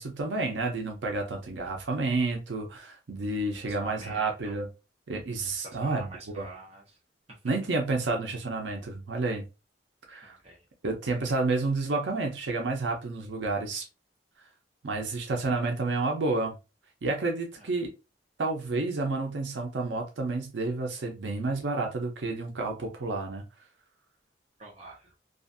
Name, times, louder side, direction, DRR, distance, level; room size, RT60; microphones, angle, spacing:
voice 1, 0.0-4.7 5.1-6.1 6.4-6.5 7.4-9.4 10.1-10.4 10.8-13.9 14.8-16.5 17.0-17.9 18.4-23.4, right 3 dB, 80° right, 0.6 m, -30 dB
voice 2, 3.7-4.6 5.6-7.0 7.3-7.4 10.2-10.7 15.5-15.7 17.6-17.7 24.6-25.1, right 2 dB, 35° right, 0.8 m, -46 dB
2.5 x 2.4 x 2.4 m
head